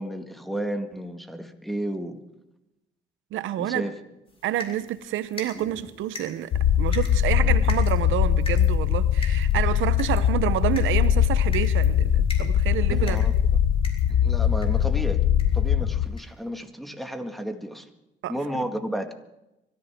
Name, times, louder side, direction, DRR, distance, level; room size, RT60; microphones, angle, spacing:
voice 1, 0.0-2.2 3.6-3.9 12.9-13.3 14.1-15.2 15.5-17.9 18.3-19.1, right 1 dB, ahead, 6 dB, 1.9 m, -32 dB
voice 2, 3.3-3.8 4.4-6.5 6.8-13.3 18.2-18.7, right 12 dB, 80° right, 13 dB, 0.8 m, -28 dB
sound 1, 4.3-14.9 15.3-15.7 16.2-16.3 16.6-16.7, left 2 dB, 30° left, 4.1 m, -43 dB
sound 2, 6.5-16.1, left 9 dB, 70° left, 0.9 m, -21 dB
24.5 x 14.0 x 3.7 m, 0.92 s
cardioid pair, 90°, 20 cm